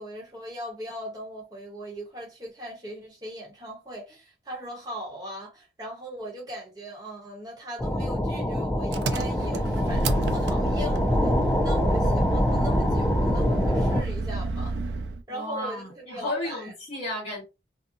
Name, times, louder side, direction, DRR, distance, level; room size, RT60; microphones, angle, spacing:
voice 1, 0.0-14.8 15.3-16.7, equal, 20° right, 1.0 m, -39 dB
sound 1, 7.8-14.0, left 1 dB, 5° left, 0.3 m, -25 dB
Engine, 8.9-15.2, right 3 dB, 65° right, 0.4 m, -30 dB
voice 2, 15.3-17.4, left 1 dB, 35° left, 1.2 m, -33 dB
2.7 x 2.2 x 2.6 m
head